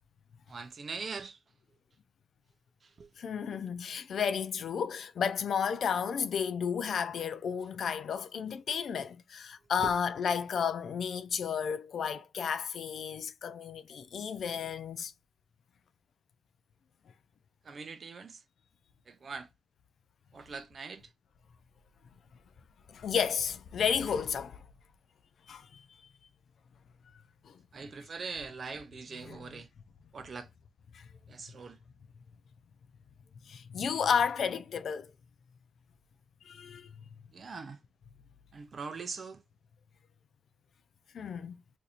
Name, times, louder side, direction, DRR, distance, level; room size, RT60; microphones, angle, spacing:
voice 1, 0.5-1.4 2.8-3.1 3.5-3.6 9.8-9.9 17.6-18.4 19.1-19.5 20.3-21.1 27.7-29.7 30.1-30.5 31.3-31.8 37.3-37.8 38.5-39.4, right 4 dB, 40° right, 0.5 m, -42 dB
voice 2, 3.2-15.1 22.9-24.6 25.5-25.8 27.4-27.6 29.3-29.4 30.9-31.1 33.5-35.1 36.4-36.9 41.1-41.6, left 7 dB, 60° left, 0.4 m, -32 dB
2.6 x 2.5 x 4.1 m
wide cardioid pair, 150°, 0 cm